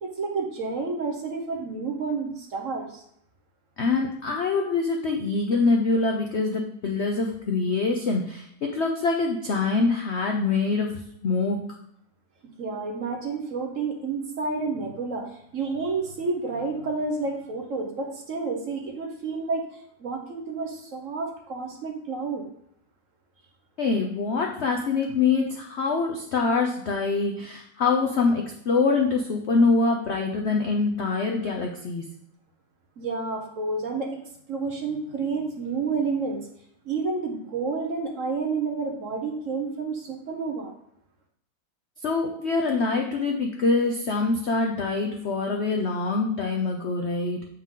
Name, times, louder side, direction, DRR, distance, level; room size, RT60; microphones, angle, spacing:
voice 1, 0.0-3.0 12.6-22.5 33.0-34.2 34.5-36.5 36.8-40.7, right 4 dB, 50° right, 2 dB, 1.1 m, -30 dB
voice 2, 3.8-11.6 23.8-32.0 42.0-47.5, left 4 dB, 65° left, 1 dB, 0.6 m, -24 dB
7.5 x 4.8 x 3.7 m, 0.72 s
omnidirectional pair, 2.0 m